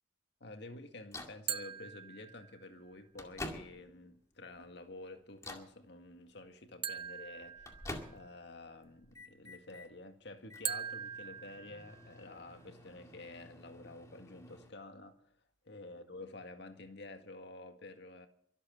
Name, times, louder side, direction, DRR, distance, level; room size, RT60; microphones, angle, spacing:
voice 1, 0.4-7.7 8.1-15.4 15.7-18.3, left 2 dB, 60° left, 2.0 m, -50 dB
Microwave oven, 1.1-1.4 2.4-2.5 2.9-4.1 4.6-4.9 5.4-5.8 7.0-8.5 8.8-9.9 10.4-14.7, left 2 dB, 15° left, 2.1 m, -49 dB
sound 1, 1.5-2.8 6.8-8.4 10.6-12.3, right 8 dB, 30° right, 0.5 m, -42 dB
23.5 x 8.1 x 6.4 m
head